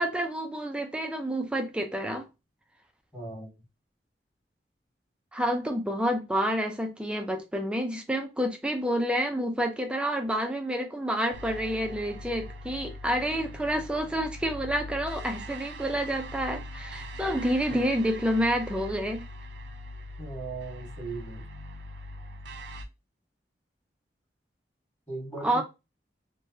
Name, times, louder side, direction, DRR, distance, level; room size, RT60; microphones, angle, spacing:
voice 1, 0.0-2.2 5.3-19.2 25.4-25.6, equal, 5° right, 0.4 m, -29 dB
voice 2, 3.1-3.5 17.7-17.8 20.2-21.5 25.1-25.6, right 3 dB, 15° left, 1.5 m, -38 dB
sound 1, 11.3-22.8, equal, 75° right, 0.4 m, -41 dB
3.1 x 2.2 x 2.7 m
head